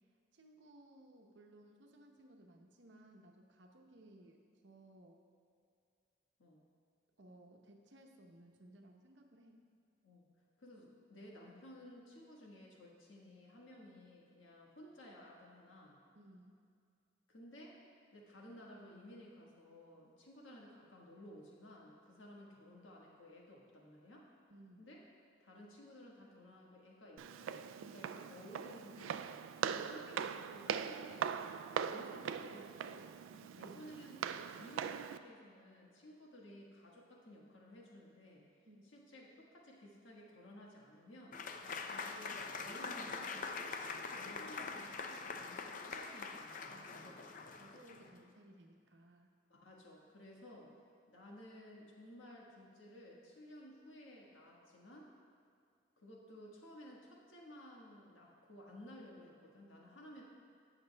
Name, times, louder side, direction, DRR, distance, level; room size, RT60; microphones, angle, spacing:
voice 1, 0.3-5.2 7.2-9.6 16.1-16.6 24.5-24.9 31.0-31.2 33.3-33.5 38.7-38.8 46.7-49.3, right 1 dB, 70° right, 2 dB, 0.9 m, -60 dB
voice 2, 10.6-16.0 17.3-17.8 18.1-24.3 24.8-25.0 25.4-29.2 29.6-31.4 31.8-33.1 33.6-34.2 34.5-38.4 38.9-41.4 41.9-47.1 49.5-50.7 51.1-55.1 56.0-60.2, left 1 dB, 85° left, -2 dB, 1.5 m, -56 dB
Walk footsteps, 27.2-35.2, right 7 dB, 90° right, 0.3 m, -41 dB
Applause / Crowd, 41.3-48.1, left 4 dB, 40° left, 0.4 m, -44 dB
16.5 x 6.6 x 2.3 m, 2.3 s
head